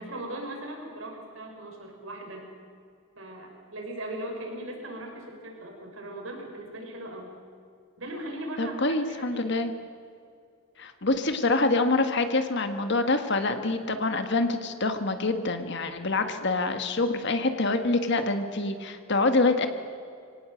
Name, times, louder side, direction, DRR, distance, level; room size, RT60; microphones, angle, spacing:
voice 1, 0.0-2.5 3.2-7.4 8.0-9.5, right 1 dB, 75° right, 1 dB, 5.9 m, -39 dB
voice 2, 8.6-9.7 10.8-19.7, left 3 dB, 55° left, 7 dB, 1.6 m, -26 dB
25.0 x 18.0 x 7.8 m, 2.3 s
head